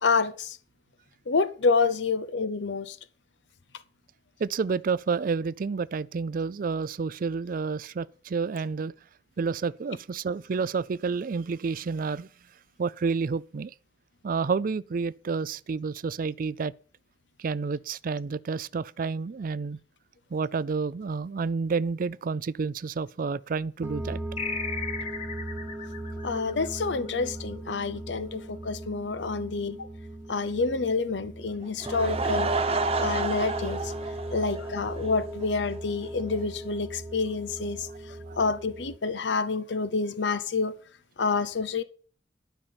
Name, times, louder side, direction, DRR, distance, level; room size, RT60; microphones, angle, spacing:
voice 1, 0.0-0.6 1.3-3.0 26.2-29.8 30.3-32.5 33.0-33.9 34.3-40.7 41.2-41.8, left 4 dB, 85° left, 0.7 m, -28 dB
voice 2, 4.4-8.9 9.4-12.3 12.8-13.7 14.2-16.7 17.4-19.8 20.3-24.2 38.3-38.4, right 5 dB, 50° right, 0.4 m, -29 dB
sound 1, 23.8-39.0, right 1 dB, 10° right, 1.2 m, -37 dB
sound 2, 24.4-27.4, left 5 dB, 35° left, 1.6 m, -36 dB
Laughter / Crowd, 31.6-35.1 35.4-35.5 36.1-36.2 36.3-36.4, right 3 dB, 35° right, 1.1 m, -30 dB
11.5 x 5.6 x 6.8 m
head